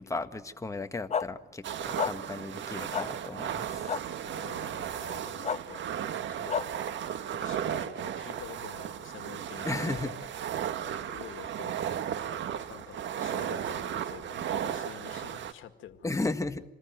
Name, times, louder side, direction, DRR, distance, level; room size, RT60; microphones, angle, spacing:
voice 1, 0.0-4.0 9.6-10.1 16.0-16.6, left 2 dB, 15° left, 7 dB, 1.7 m, -35 dB
sound 1, 1.1-1.3 2.0-2.1 2.9-3.1 3.9-4.0 5.4-5.6 6.5-6.6, left 6 dB, 35° left, 1.0 m, -29 dB
sound 2, 1.6-15.5, right 9 dB, 70° right, 1.8 m, -35 dB
voice 2, 4.2-5.8 6.3-7.0 7.3-10.3 10.6-10.7 11.1-11.7 12.7-16.4, left 10 dB, 80° left, 9 dB, 2.0 m, -48 dB
27.5 x 20.5 x 9.3 m, 0.84 s
cardioid pair, 90°, 20 cm